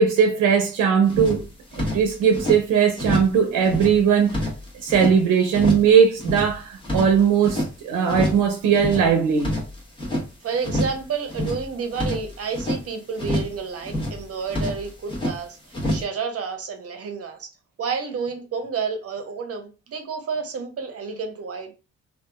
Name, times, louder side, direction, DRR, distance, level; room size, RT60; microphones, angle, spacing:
voice 1, 0.0-1.4 1.8-4.4 4.8-9.5, right 7 dB, 85° right, 0.6 m, -19 dB
sound 1, 1.1-2.6 3.0-3.4 3.6-5.2 5.5-5.9 6.2-7.7 8.1-8.5 8.7-10.3 10.6-11.0 11.3-12.8 13.2-13.6 13.8-15.4 15.7-16.0, equal, 15° left, 1.1 m, -27 dB
voice 2, 10.4-17.5 17.8-21.7, right 5 dB, 50° right, 0.7 m, -30 dB
2.8 x 2.4 x 2.2 m
cardioid pair, 90°, 30 cm